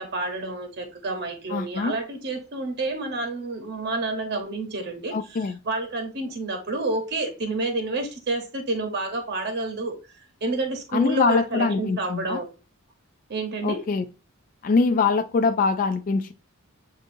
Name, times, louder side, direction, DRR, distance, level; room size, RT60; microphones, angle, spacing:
voice 1, 0.0-10.0 10.4-12.5 13.3-13.8, right 2 dB, 50° right, 0.9 m, -29 dB
voice 2, 1.5-1.9 5.1-5.6 10.9-12.4 13.6-14.0 14.6-16.3, left 4 dB, 40° left, 0.3 m, -23 dB
7.6 x 2.5 x 2.6 m
head